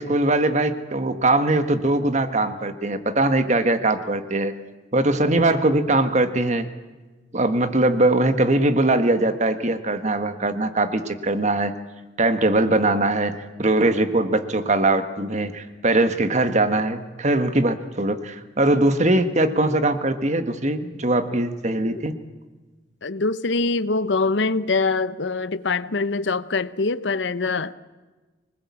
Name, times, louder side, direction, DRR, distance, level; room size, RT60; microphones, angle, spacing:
voice 1, 0.0-4.5 4.9-6.7 7.3-11.7 12.2-22.1, right 2 dB, 40° right, 1.5 m, -21 dB
voice 2, 23.0-27.7, left 3 dB, 80° left, 0.8 m, -24 dB
25.5 x 20.0 x 8.5 m
head